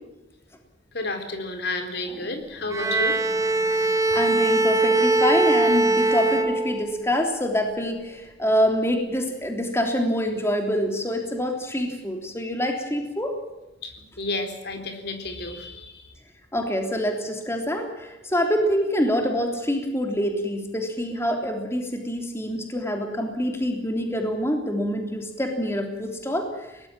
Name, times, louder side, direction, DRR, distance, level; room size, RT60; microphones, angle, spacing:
voice 1, 0.9-3.2 13.8-16.2, left 2 dB, 60° left, 7 dB, 4.1 m, -31 dB
Bowed string instrument, 2.7-7.1, right 2 dB, 15° right, 1.5 m, -21 dB
voice 2, 4.1-13.4 16.5-26.5, equal, 15° left, 4 dB, 3.2 m, -25 dB
22.5 x 19.0 x 7.5 m, 0.99 s
head